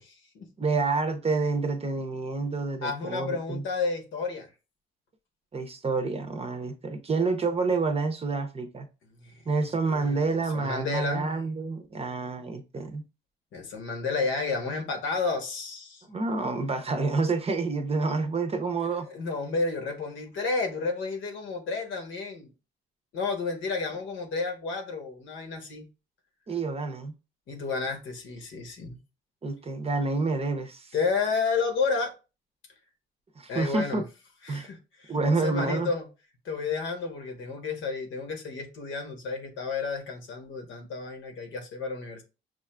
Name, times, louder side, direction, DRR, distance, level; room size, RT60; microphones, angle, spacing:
voice 1, 0.0-0.5 2.8-4.5 9.2-9.4 9.8-11.3 13.5-16.0 19.1-22.5 23.1-25.9 27.5-29.0 30.9-32.1 33.5-34.0 34.5-36.0 36.4-42.2, left 4 dB, 75° left, 1.0 m, -31 dB
voice 2, 0.6-3.6 5.5-8.9 9.5-13.0 16.1-19.1 26.5-27.1 29.4-30.9 33.4-34.0 34.5-34.7 35.1-35.9, right 3 dB, 30° right, 0.6 m, -28 dB
6.2 x 2.4 x 2.2 m
cardioid pair, 90°, 20 cm